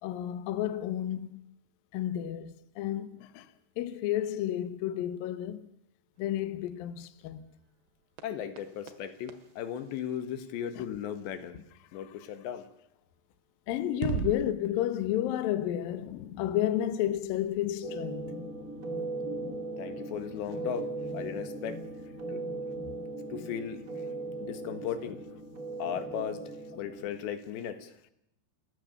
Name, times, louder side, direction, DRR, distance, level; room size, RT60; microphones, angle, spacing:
voice 1, 0.0-1.4 1.9-3.5 3.8-5.7 6.2-7.5 10.8-10.9 11.9-12.2 13.7-18.4, left 11 dB, 70° left, 2.5 m, -31 dB
sound 1, 6.2-10.8 13.1-13.2 13.9-14.5, right 8 dB, 75° right, 3.5 m, -41 dB
voice 2, 8.2-11.7 11.9-12.7 19.8-21.8 22.3-22.4 23.3-23.8 24.4-25.2 25.8-26.4 26.8-27.9, left 9 dB, 85° left, 3.9 m, -36 dB
sound 2, 17.8-27.2, right 2 dB, 25° right, 2.1 m, -38 dB
30.0 x 14.0 x 6.9 m
omnidirectional pair, 5.0 m